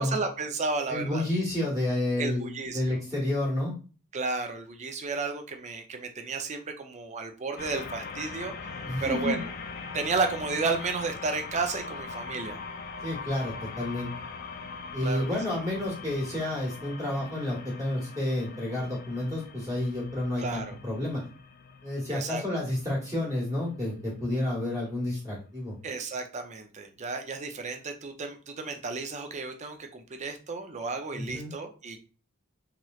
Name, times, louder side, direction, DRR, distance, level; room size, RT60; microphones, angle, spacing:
voice 1, 0.0-1.2 2.2-3.0 4.1-9.5 9.9-12.6 15.0-15.2 20.4-20.7 22.1-22.4 25.8-32.0, right 4 dB, 30° right, 5 dB, 0.5 m, -32 dB
voice 2, 0.9-3.7 8.8-9.4 13.0-14.1 14.9-21.2 21.8-25.7 31.1-31.5, left 1 dB, 15° right, -5 dB, 1.2 m, -30 dB
sound 1, 7.6-24.1, left 4 dB, 40° left, 0.4 m, -41 dB
3.1 x 2.9 x 2.3 m, 0.35 s
head